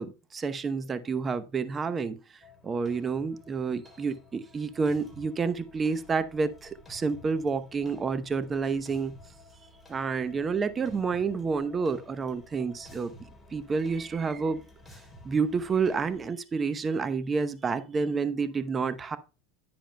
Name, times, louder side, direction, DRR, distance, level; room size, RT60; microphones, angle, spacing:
voice 1, 0.0-2.2 2.6-9.2 9.9-13.1 13.5-14.6 15.2-19.2, right 5 dB, 25° right, 0.8 m, -29 dB
sound 1, 2.4-16.3, left 1 dB, 5° left, 3.2 m, -53 dB
10.0 x 8.9 x 2.2 m
supercardioid pair, 110°, 0 cm